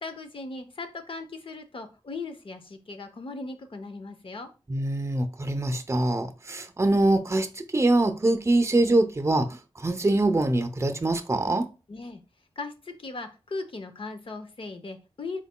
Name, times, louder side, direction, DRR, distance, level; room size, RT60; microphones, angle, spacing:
voice 1, 0.0-4.5 11.9-12.2 12.6-15.4, left 3 dB, 55° left, 0.7 m, -38 dB
voice 2, 4.7-7.5 7.7-11.7, right 2 dB, 25° right, 0.6 m, -24 dB
4.4 x 4.0 x 2.2 m
wide cardioid pair, 70°, 11 cm